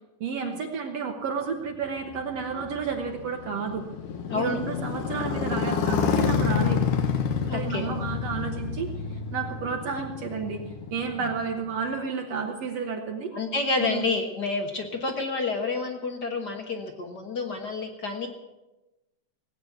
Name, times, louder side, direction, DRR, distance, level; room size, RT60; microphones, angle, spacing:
voice 1, 0.2-3.8 4.3-6.9 7.4-10.6 10.9-13.3 13.8-14.1, right 5 dB, 60° right, 2 dB, 2.1 m, -31 dB
Motorcycle, 1.8-11.8, left 6 dB, 90° left, 2.9 m, -29 dB
voice 2, 4.3-4.6 7.5-7.9 11.2-11.3 13.3-18.3, left 3 dB, 45° left, 4 dB, 1.4 m, -29 dB
18.5 x 8.9 x 8.0 m, 1.0 s
omnidirectional pair, 3.6 m